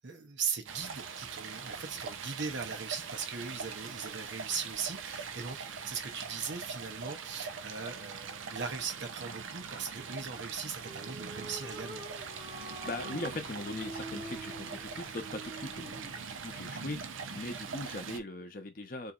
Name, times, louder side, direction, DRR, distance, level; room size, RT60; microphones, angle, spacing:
voice 1, 0.0-12.0, right 5 dB, 65° right, 0.9 m, -39 dB
Stream, 0.7-18.2, right 5 dB, 85° right, 0.5 m, -42 dB
sound 1, 10.8-16.2, right 1 dB, 20° right, 0.6 m, -46 dB
voice 2, 12.8-19.1, left 2 dB, 45° left, 0.8 m, -40 dB
4.1 x 2.7 x 2.4 m
head